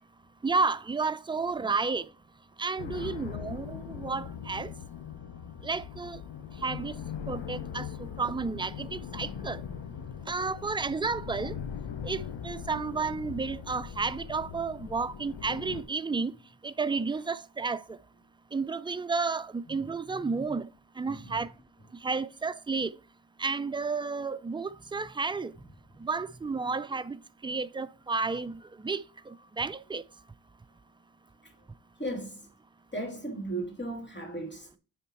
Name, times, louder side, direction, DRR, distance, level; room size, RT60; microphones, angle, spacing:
voice 1, 0.4-2.1 2.6-4.7 5.6-6.2 6.6-6.9 7.3-9.6 10.3-11.5 12.0-16.3 16.6-17.8 18.5-20.7 21.0-21.5 22.0-22.9 23.4-25.5 26.0-30.0, right 4 dB, 10° right, 0.3 m, -32 dB
sound 1, 2.8-15.8, left 8 dB, 70° left, 1.0 m, -40 dB
voice 2, 21.1-21.4 32.0-32.4 32.9-34.7, right 1 dB, 25° left, 2.7 m, -36 dB
9.3 x 3.5 x 4.5 m
cardioid pair, 65°, 44 cm